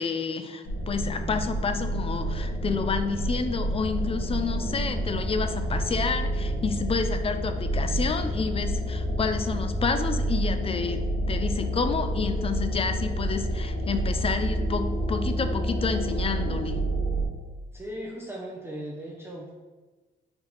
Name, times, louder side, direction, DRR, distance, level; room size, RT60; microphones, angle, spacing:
voice 1, 0.0-11.0 11.3-16.8, left 5 dB, 30° left, 8 dB, 0.4 m, -29 dB
sound 1, 0.6-17.3, right 1 dB, 60° left, 1.3 m, -28 dB
voice 2, 17.7-19.5, equal, 10° right, -4 dB, 0.6 m, -37 dB
4.4 x 2.8 x 3.8 m, 1.2 s
cardioid pair, 90°, 20 cm